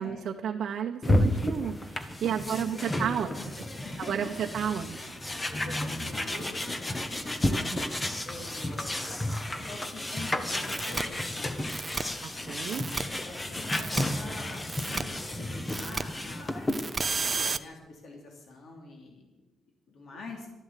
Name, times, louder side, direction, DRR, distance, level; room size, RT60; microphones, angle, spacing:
voice 1, 0.0-3.3 4.0-5.1 7.5-7.8 12.2-12.9, right 8 dB, 55° right, 3 dB, 0.8 m, -32 dB
sound 1, 1.0-17.0, left 1 dB, 15° left, 0.9 m, -32 dB
voice 2, 2.4-4.3 5.3-7.2 8.2-9.2 9.5-11.5 13.2-15.0 15.4-16.8 17.1-19.4 19.9-20.5, left 2 dB, 55° left, 1 dB, 3.0 m, -45 dB
sound 2, 10.7-11.0 11.7-12.0 12.7-13.0 13.7-14.0 14.7-15.0 15.7-16.0 16.7-17.6, right 4 dB, 20° right, 0.5 m, -31 dB
13.0 x 11.5 x 8.2 m, 1.1 s
wide cardioid pair, 180°, 0 cm